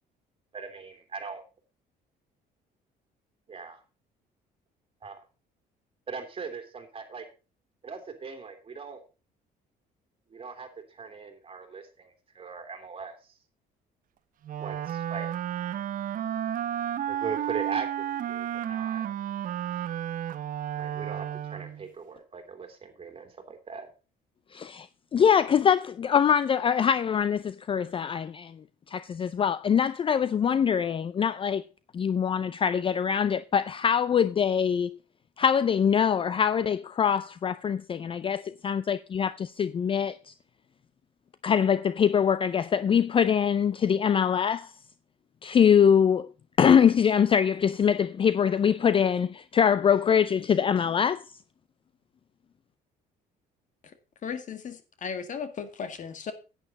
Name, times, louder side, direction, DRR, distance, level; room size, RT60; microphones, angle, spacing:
voice 1, 0.5-1.4 3.5-3.8 5.0-5.2 6.1-7.3 7.8-9.0 10.3-13.2 14.6-15.3 17.1-19.1 20.8-23.9, right 5 dB, 35° right, 2.9 m, -39 dB
Wind instrument woodwind instrument, 14.4-21.9, right 10 dB, 55° right, 0.8 m, -32 dB
voice 2, 24.5-24.9 25.1-28.5 28.9-31.6 31.9-35.0 35.4-40.3 41.4-44.7 45.4-46.3 46.6-51.2, left 7 dB, 30° left, 0.4 m, -23 dB
voice 3, 54.2-56.3, left 6 dB, 50° left, 2.0 m, -36 dB
10.5 x 9.1 x 4.1 m
cardioid pair, 110°, 17 cm